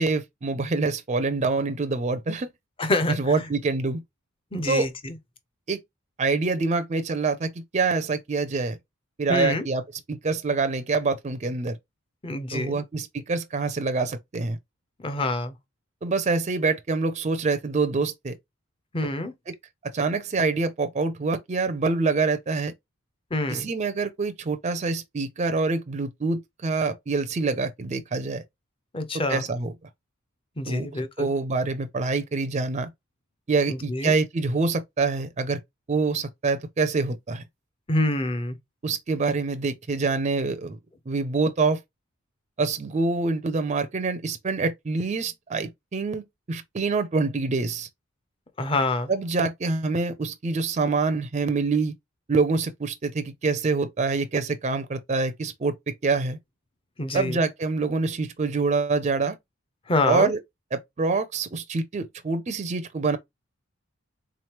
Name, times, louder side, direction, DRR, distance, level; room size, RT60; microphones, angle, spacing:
voice 1, 0.0-2.5 3.1-4.0 4.7-4.9 5.7-5.8 6.2-8.8 9.2-9.8 10.1-11.8 12.5-14.6 16.0-18.4 19.5-19.6 19.8-22.7 23.5-28.4 29.3-29.7 30.7-30.9 31.2-32.9 33.5-35.6 35.9-37.4 38.8-40.8 41.1-41.8 42.6-47.9 49.1-51.9 52.3-55.8 56.0-56.4 57.1-59.4 60.1-60.4 60.7-63.2, right 4 dB, 30° right, 0.4 m, -26 dB
voice 2, 2.8-3.4 4.5-5.2 9.3-9.7 12.2-12.8 15.0-15.6 18.9-19.3 23.3-23.7 28.9-29.4 30.6-31.3 33.7-34.1 37.9-38.6 48.6-49.1 57.0-57.4 59.9-60.3, left 2 dB, 25° left, 0.6 m, -26 dB
3.7 x 3.2 x 2.9 m
head